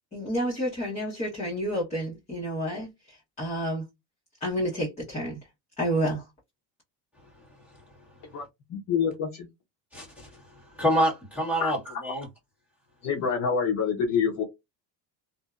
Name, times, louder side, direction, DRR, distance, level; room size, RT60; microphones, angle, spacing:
voice 1, 0.1-3.9 4.4-5.4 5.8-6.3, equal, 15° left, 0.9 m, -30 dB
voice 2, 8.7-9.5 11.6-11.7 13.0-14.4, left 6 dB, 40° left, 0.8 m, -26 dB
voice 3, 9.9-12.3, equal, 5° right, 1.4 m, -27 dB
2.5 x 2.2 x 2.3 m
cardioid pair, 155°, 42 cm